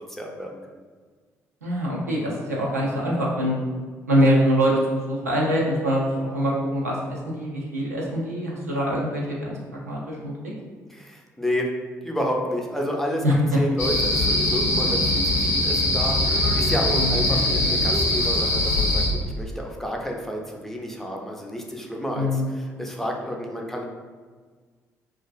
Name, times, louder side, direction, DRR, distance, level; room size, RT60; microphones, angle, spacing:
voice 1, 0.1-0.8 10.9-11.7 12.0-13.3 13.6-23.8, equal, 5° left, 0 dB, 0.4 m, -30 dB
voice 2, 1.6-3.6 4.1-9.6 9.9-10.3 13.2-13.3 17.0-17.2 22.2-22.6, equal, 90° right, -4 dB, 0.4 m, -24 dB
sound 1, 13.8-19.1, left 1 dB, 80° left, 0.5 m, -22 dB
2.4 x 2.3 x 2.3 m, 1.5 s
figure-of-eight pair, 45°, 8 cm